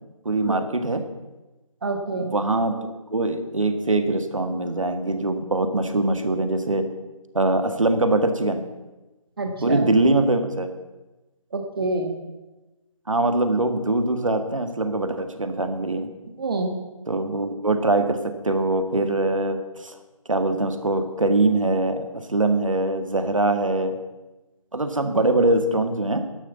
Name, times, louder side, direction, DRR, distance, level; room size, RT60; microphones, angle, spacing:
voice 1, 0.3-1.0 2.2-2.8 3.1-6.9 7.3-8.6 9.6-10.7 13.1-16.1 17.1-20.0 20.3-23.9 24.7-26.3, right 2 dB, 70° right, 8 dB, 1.8 m, -22 dB
voice 2, 1.8-2.3 9.4-9.9 11.5-12.1 16.4-16.7, right 2 dB, 45° right, 4 dB, 1.4 m, -27 dB
11.5 x 11.0 x 7.0 m, 1.1 s
figure-of-eight pair, 155°, 17 cm